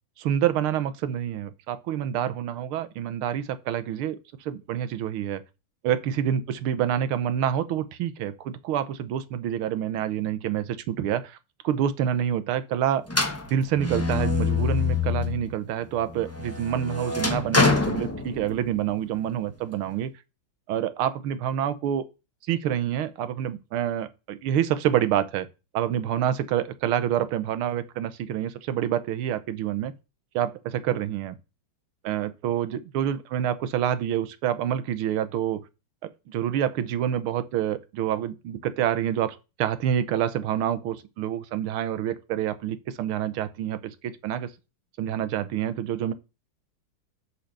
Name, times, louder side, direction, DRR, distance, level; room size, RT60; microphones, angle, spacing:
voice 1, 0.2-4.2 4.4-5.4 5.8-11.4 11.6-13.0 13.5-20.1 20.7-22.0 22.5-25.5 25.7-29.9 30.3-31.4 32.0-35.6 36.3-44.5 45.0-46.1, right 10 dB, 85° right, 1.7 m, -27 dB
sound 1, 13.1-15.5 15.9-18.8, left 4 dB, 25° left, 0.3 m, -25 dB
6.9 x 4.5 x 6.6 m
omnidirectional pair, 2.3 m